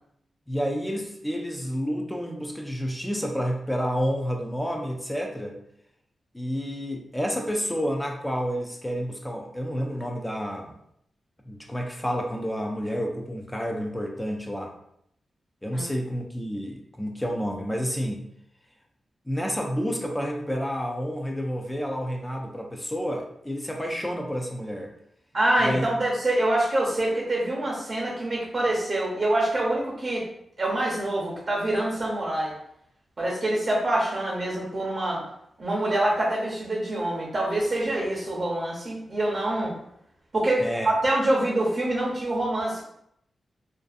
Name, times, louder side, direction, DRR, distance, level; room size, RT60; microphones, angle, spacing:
voice 1, 0.5-5.6 6.3-10.7 11.4-14.7 15.6-18.2 19.3-24.9 25.6-25.9 40.6-40.9, equal, 10° left, 1 dB, 0.4 m, -30 dB
voice 2, 25.3-30.2 30.6-32.5 33.2-35.2 35.6-39.7 40.3-42.8, right 1 dB, 40° right, -4 dB, 0.7 m, -25 dB
2.5 x 2.4 x 2.4 m, 0.75 s
wide cardioid pair, 95°, 0 cm